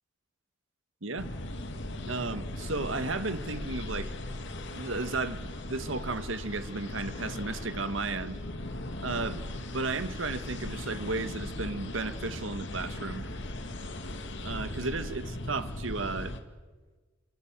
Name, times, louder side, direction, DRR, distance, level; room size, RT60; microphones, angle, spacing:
sound 1, 1.2-16.4, left 1 dB, 65° left, 2.3 m, -38 dB
voice 1, 2.1-4.1 4.7-8.4 9.0-9.4 9.7-13.2 14.4-16.3, right 3 dB, 70° right, 10 dB, 1.8 m, -34 dB
27.5 x 25.5 x 7.6 m, 1.4 s
head